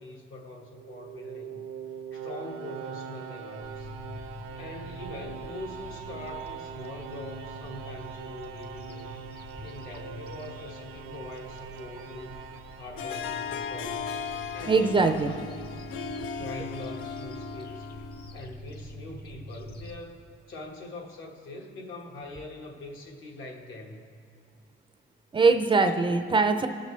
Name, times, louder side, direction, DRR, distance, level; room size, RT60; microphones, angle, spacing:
voice 1, 0.0-1.6 2.1-3.9 4.5-9.1 9.6-12.4 12.8-14.1 14.5-15.8 16.3-17.9 18.3-20.2 20.5-24.0 26.0-26.2, left 2 dB, 70° left, 1 dB, 1.4 m, -43 dB
sound 1, 0.6-13.7, right 7 dB, 85° right, 0.6 m, -42 dB
sound 2, 3.6-20.0, left 1 dB, 50° left, 0.8 m, -46 dB
Harp, 13.0-18.4, left 6 dB, 90° left, 0.5 m, -36 dB
voice 2, 14.6-15.3 25.3-26.7, right 4 dB, 25° right, 7 dB, 0.4 m, -22 dB
19.5 x 6.6 x 3.2 m, 2.2 s
cardioid pair, 150°, 21 cm